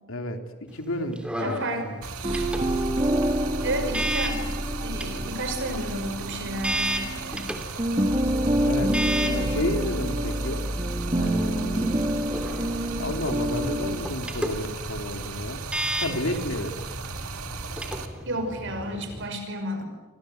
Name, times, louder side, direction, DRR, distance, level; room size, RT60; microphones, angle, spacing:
voice 1, 0.1-2.0 8.6-10.7 11.1-11.9 13.0-15.6 16.0-16.8, left 1 dB, 65° left, 6 dB, 3.0 m, -31 dB
sound 1, 0.7-19.2, right 1 dB, 5° right, 2.8 m, -35 dB
voice 2, 1.4-1.9 2.2-2.5 3.6-4.4 4.8-7.5 18.3-19.9, right 1 dB, 55° right, 7 dB, 5.5 m, -32 dB
Stream, 2.0-18.1, right 4 dB, 80° right, 2.3 m, -37 dB
sound 2, 2.2-7.5 7.8-14.1, right 1 dB, 25° right, 2.7 m, -27 dB
29.0 x 24.5 x 7.9 m, 1.2 s
head